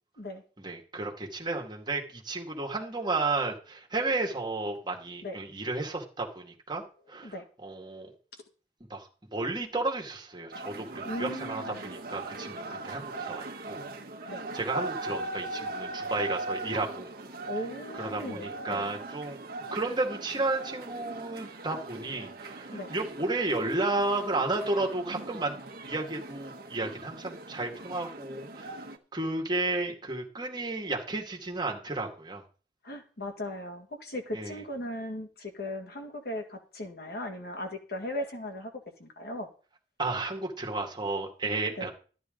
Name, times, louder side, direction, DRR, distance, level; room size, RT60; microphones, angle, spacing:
voice 1, 0.6-6.8 7.1-7.3 7.6-8.1 8.9-13.8 14.2-17.1 18.0-19.4 19.7-25.6 25.8-28.8 29.1-32.4 34.3-34.6 40.0-41.9, right 2 dB, 25° right, 1 dB, 2.0 m, -32 dB
sound 1, 10.5-29.0, right 2 dB, 60° right, 1.1 m, -40 dB
voice 2, 11.0-11.8 14.3-14.4 17.5-18.9 22.7-22.9 32.8-39.5 41.8-41.9, left 1 dB, 60° left, 4 dB, 2.0 m, -38 dB
13.0 x 9.8 x 3.9 m, 0.39 s
head